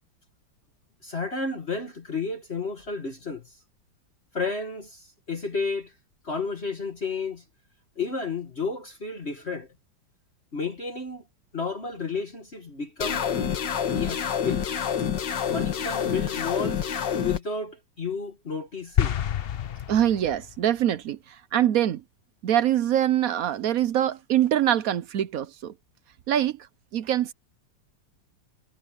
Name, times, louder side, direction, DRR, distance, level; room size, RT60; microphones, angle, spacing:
voice 1, 1.0-3.5 4.3-5.9 6.2-7.4 8.0-9.7 10.5-11.2 11.5-13.3 13.9-14.7 15.5-16.9 17.2-19.2, left 4 dB, 35° left, 1.9 m, -32 dB
sound 1, 13.0-17.4, left 8 dB, 70° left, 2.0 m, -27 dB
sound 2, 19.0-20.6, left 10 dB, 85° left, 0.5 m, -28 dB
voice 2, 19.9-22.0 22.4-25.7 26.3-26.7 26.9-27.3, right 11 dB, 65° right, 0.9 m, -24 dB
omnidirectional pair, 2.0 m